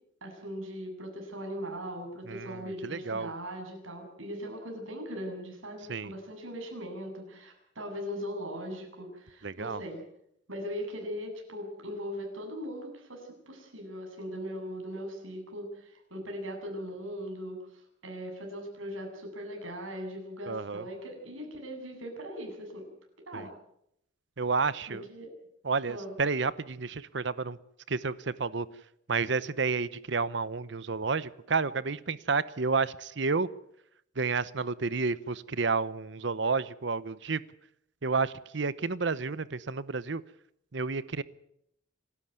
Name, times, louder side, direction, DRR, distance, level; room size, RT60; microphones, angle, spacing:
voice 1, 0.2-10.0 10.5-22.8 23.3-23.5 24.9-25.3 25.8-26.1, equal, 85° right, 3 dB, 7.9 m, -39 dB
voice 2, 2.3-3.3 5.9-6.1 9.4-9.8 20.5-20.9 23.3-23.5 24.4-25.0 25.6-27.6 27.9-28.7 29.1-33.5 34.2-37.4 38.0-40.2 40.7-41.2, right 4 dB, 60° right, 17 dB, 0.8 m, -30 dB
27.5 x 13.5 x 9.4 m, 0.75 s
head